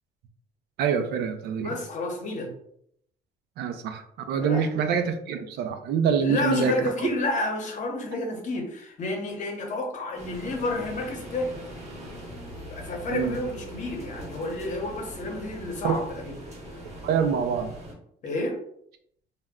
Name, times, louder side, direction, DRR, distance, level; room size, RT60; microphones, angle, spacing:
voice 1, 0.8-1.7 3.6-6.7 7.0-7.1 13.1-13.4 15.8-16.0 17.0-17.7, right 7 dB, 75° right, 7 dB, 0.4 m, -25 dB
voice 2, 1.6-2.5 4.4-4.7 6.2-11.6 12.7-16.4 18.2-18.6, left 2 dB, 45° left, 2 dB, 0.8 m, -30 dB
sound 1, 10.2-17.9, equal, 40° right, 1.0 m, -41 dB
2.2 x 2.1 x 3.5 m, 0.70 s
cardioid pair, 110°, 17 cm